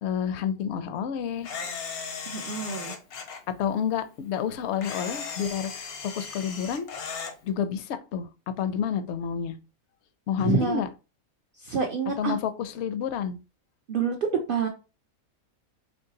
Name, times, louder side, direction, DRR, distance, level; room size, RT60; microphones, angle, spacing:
voice 1, 0.0-1.5 3.6-6.9 7.4-8.3 8.6-9.5 10.3-10.9 12.2-13.4, left 8 dB, 65° left, 11 dB, 0.7 m, -29 dB
Camera, 1.4-3.4 4.8-7.3, left 5 dB, 90° left, 1.4 m, -36 dB
voice 2, 2.3-2.9 10.4-10.8 11.6-12.4 13.9-14.7, right 5 dB, 70° right, 3 dB, 0.5 m, -27 dB
4.5 x 3.0 x 2.8 m, 0.31 s
omnidirectional pair, 1.5 m